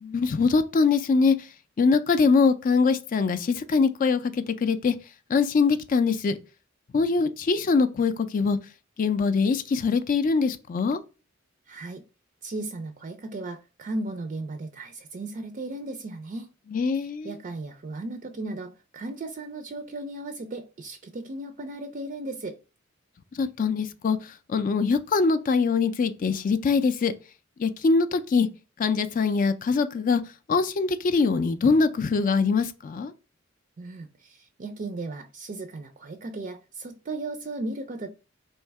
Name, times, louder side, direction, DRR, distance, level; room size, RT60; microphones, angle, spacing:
voice 1, 0.0-1.4 1.8-4.9 5.3-6.4 6.9-8.6 9.0-11.0 16.7-17.3 23.3-27.1 27.6-28.5 28.8-30.2 30.5-33.1, left 4 dB, 40° left, 0.3 m, -23 dB
voice 2, 11.7-12.0 12.4-16.5 17.2-22.6 33.8-38.1, right 2 dB, 40° right, 0.4 m, -36 dB
3.1 x 2.7 x 4.5 m
head